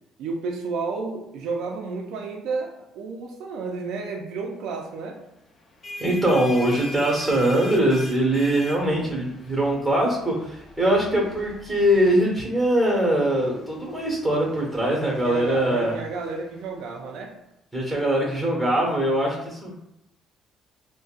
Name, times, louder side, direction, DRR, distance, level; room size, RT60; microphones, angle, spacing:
voice 1, 0.2-5.2 15.0-17.4, right 4 dB, 80° right, 1 dB, 0.5 m, -31 dB
sound 1, 5.6-16.9, left 1 dB, 45° left, 0.6 m, -42 dB
voice 2, 6.0-10.3 10.8-16.0 17.7-19.7, right 1 dB, 5° right, -2 dB, 1.3 m, -22 dB
3.8 x 2.2 x 2.4 m, 0.84 s
cardioid pair, 85°, 0 cm